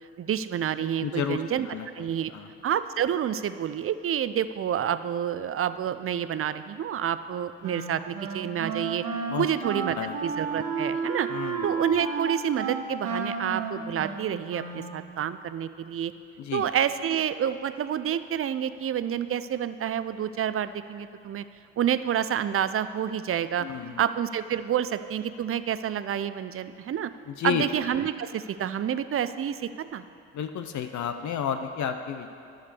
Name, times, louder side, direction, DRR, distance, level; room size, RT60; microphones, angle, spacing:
voice 1, 0.2-1.7 1.9-2.3 2.6-9.0 9.4-10.0 10.2-11.3 11.6-16.1 16.5-21.4 21.8-23.7 24.0-27.1 27.4-30.0, right 9 dB, 40° right, 13 dB, 0.6 m, -28 dB
voice 2, 1.0-1.4 1.7-1.9 2.3-2.5 9.3-9.5 10.0-10.2 11.3-11.7 16.4-16.6 23.6-24.0 27.3-27.6 30.3-32.3, left 8 dB, 55° left, 7 dB, 0.8 m, -31 dB
Wind instrument woodwind instrument, 7.6-15.1, right 5 dB, 70° right, 1.4 m, -32 dB
11.0 x 6.6 x 6.8 m, 2.4 s
hypercardioid pair, 55°, 34 cm